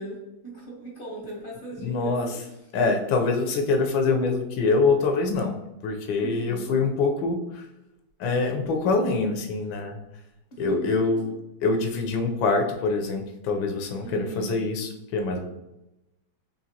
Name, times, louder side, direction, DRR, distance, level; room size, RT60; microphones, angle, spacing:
voice 1, 0.0-2.5 6.2-6.7 10.5-11.2 14.0-14.7, right 3 dB, 35° left, -6 dB, 1.0 m, -38 dB
voice 2, 1.8-2.3 2.7-7.7 8.2-10.0 10.6-11.3 11.6-15.4, left 3 dB, 90° left, 4 dB, 1.4 m, -25 dB
5.0 x 2.8 x 2.8 m, 0.92 s
omnidirectional pair, 2.1 m